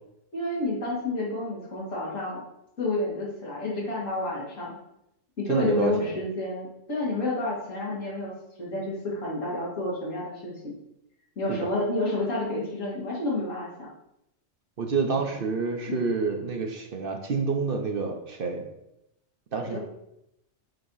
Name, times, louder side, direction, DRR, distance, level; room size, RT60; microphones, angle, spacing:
voice 1, 0.3-2.4 2.8-4.8 5.4-8.3 8.6-10.7 11.4-13.9 15.9-16.0 19.7-19.8, left 2 dB, 85° left, -5 dB, 2.5 m, -30 dB
voice 2, 5.5-6.1 11.5-11.7 14.8-18.6 19.5-19.8, right 4 dB, 50° right, 4 dB, 0.9 m, -28 dB
7.8 x 2.9 x 5.4 m, 0.83 s
omnidirectional pair, 1.3 m